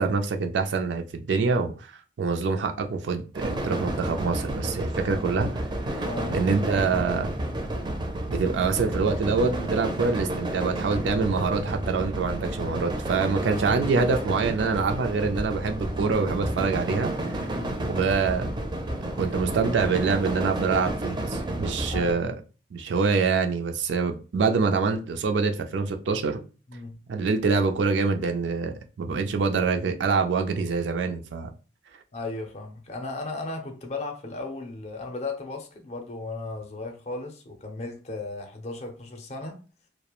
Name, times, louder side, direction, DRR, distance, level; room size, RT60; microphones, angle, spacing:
voice 1, 0.0-1.7 2.2-5.6 6.3-7.3 8.3-17.4 17.9-18.5 19.2-22.3 22.7-26.4 27.1-31.5, right 4 dB, 90° right, 6 dB, 0.4 m, -25 dB
sound 1, 3.3-22.1, right 1 dB, 25° right, 0.4 m, -31 dB
voice 2, 6.0-6.4 17.5-17.8 21.9-22.2 26.7-27.0 32.1-39.6, left 3 dB, 40° left, 4 dB, 0.5 m, -35 dB
2.3 x 2.0 x 2.9 m, 0.35 s
head